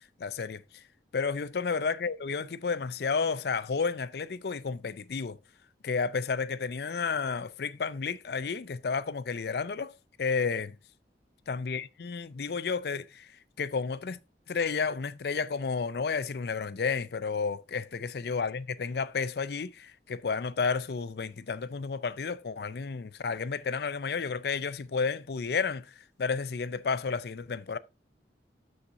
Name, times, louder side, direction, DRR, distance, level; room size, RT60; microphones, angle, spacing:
voice 1, 0.2-0.8 1.1-5.4 5.8-9.9 10.2-10.7 11.5-13.3 13.6-14.2 14.5-27.8, left 5 dB, 60° left, 0.5 m, -31 dB
13.0 x 4.3 x 2.5 m
head